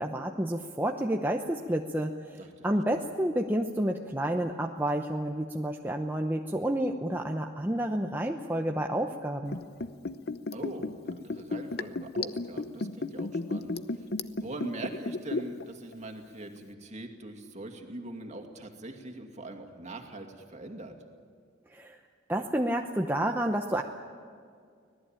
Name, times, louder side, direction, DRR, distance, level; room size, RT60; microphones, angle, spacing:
voice 1, 0.0-9.6 21.7-22.0 22.3-23.8, right 1 dB, 10° right, 2 dB, 0.9 m, -30 dB
Liquid, 9.5-15.6 15.9-16.0, left 2 dB, 55° left, 0.8 m, -33 dB
voice 2, 10.5-14.1 14.4-20.9, right 1 dB, 35° right, 4 dB, 2.4 m, -42 dB
25.0 x 18.5 x 8.9 m, 2.2 s
head